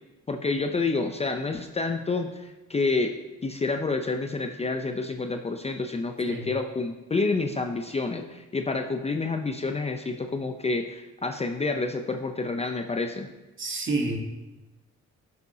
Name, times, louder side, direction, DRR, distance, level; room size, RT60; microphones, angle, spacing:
voice 1, 0.3-3.2 3.4-13.3, left 3 dB, 20° left, 5 dB, 0.5 m, -28 dB
voice 2, 13.6-14.2, right 3 dB, 40° right, 1 dB, 1.7 m, -28 dB
11.5 x 6.8 x 2.8 m, 1.1 s
cardioid pair, 90°, 30 cm